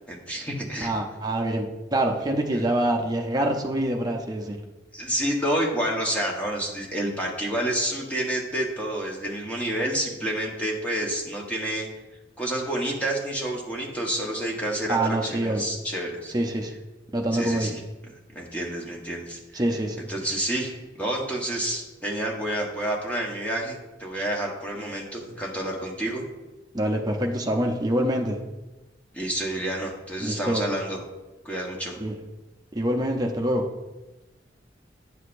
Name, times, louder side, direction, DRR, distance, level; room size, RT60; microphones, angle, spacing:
voice 1, 0.1-0.9 2.5-2.6 4.9-11.9 12.4-16.3 17.3-17.8 18.3-19.6 20.1-26.2 29.1-31.0 31.4-32.0, right 1 dB, 10° left, -2 dB, 1.1 m, -29 dB
voice 2, 0.8-4.6 14.9-15.6 16.3-16.7 17.1-17.7 19.5-20.0 26.7-28.4 30.2-30.6 32.0-32.1 32.7-33.6, right 1 dB, 20° right, 2 dB, 0.7 m, -25 dB
9.7 x 6.4 x 2.6 m, 1.1 s
head